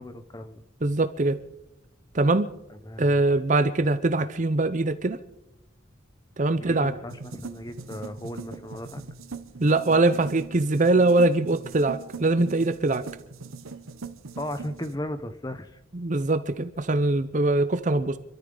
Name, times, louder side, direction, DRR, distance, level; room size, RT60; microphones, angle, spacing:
voice 1, 0.0-0.6 2.7-3.2 6.6-9.0 14.4-15.8, left 1 dB, 20° left, 10 dB, 0.8 m, -36 dB
voice 2, 0.8-1.4 2.1-2.5 3.0-5.2 6.4-6.9 9.6-13.0 15.9-18.2, right 2 dB, 35° right, 11 dB, 0.6 m, -22 dB
sound 1, 7.1-15.0, right 4 dB, 90° right, 1.0 m, -41 dB
26.0 x 13.5 x 3.9 m, 0.88 s
head